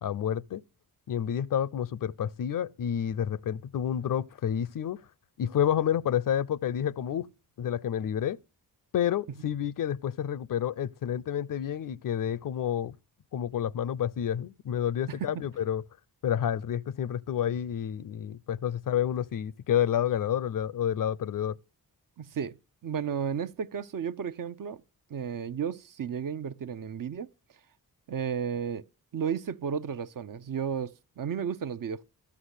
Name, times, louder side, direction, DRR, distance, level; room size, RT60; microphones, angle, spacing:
voice 1, 0.0-0.6 1.1-5.0 5.4-7.3 7.6-8.4 8.9-12.9 13.3-15.8 16.2-21.6, left 9 dB, 60° left, 0.5 m, -29 dB
voice 2, 22.2-22.6 22.8-24.8 25.1-27.3 28.1-28.8 29.1-32.0, right 7 dB, 60° right, 0.7 m, -33 dB
13.0 x 5.8 x 8.1 m
cardioid pair, 80°, 37 cm